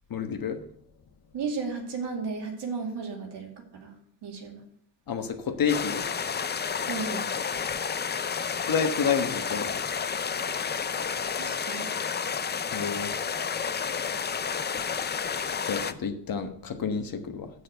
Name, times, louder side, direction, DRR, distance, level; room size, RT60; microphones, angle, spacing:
voice 1, 0.1-0.6 5.1-6.0 8.6-9.8 12.7-13.1 15.6-17.5, left 6 dB, 55° left, 7 dB, 1.2 m, -29 dB
voice 2, 1.3-3.9 4.2-4.6 6.9-7.2 11.3-11.9, right 4 dB, 70° right, 1 dB, 2.4 m, -34 dB
sound 1, 5.7-15.9, left 6 dB, 25° left, 0.4 m, -30 dB
6.8 x 6.4 x 7.7 m, 0.67 s
cardioid pair, 100°, 42 cm